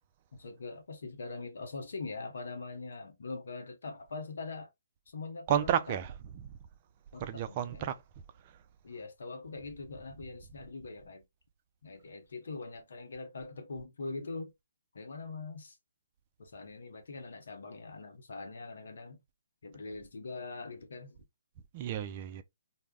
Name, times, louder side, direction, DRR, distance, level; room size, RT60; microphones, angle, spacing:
voice 1, 0.3-4.7 5.1-6.0 7.1-7.9 8.8-11.3 11.8-14.5 14.9-15.8 16.4-19.2 19.6-21.2, left 3 dB, 70° left, 0.6 m, -42 dB
voice 2, 5.5-6.5 7.2-8.0 21.7-22.4, right 10 dB, 35° right, 0.3 m, -32 dB
2.2 x 2.0 x 3.4 m
hypercardioid pair, 140°, 0 cm